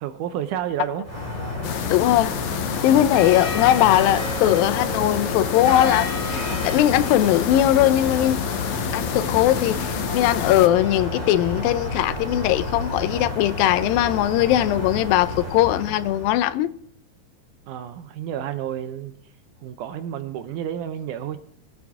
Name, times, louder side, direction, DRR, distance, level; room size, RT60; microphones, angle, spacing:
voice 1, 0.0-1.1 17.7-19.1 19.6-21.4, right 10 dB, 75° right, 1.9 m, -30 dB
sound 1, 1.0-16.5, left 2 dB, 10° left, 3.6 m, -30 dB
sound 2, 1.6-10.7, left 10 dB, 70° left, 1.8 m, -30 dB
voice 2, 1.9-2.4 2.8-8.4 8.9-16.7, left 13 dB, 90° left, 2.4 m, -20 dB
20.5 x 8.6 x 3.6 m
omnidirectional pair, 4.0 m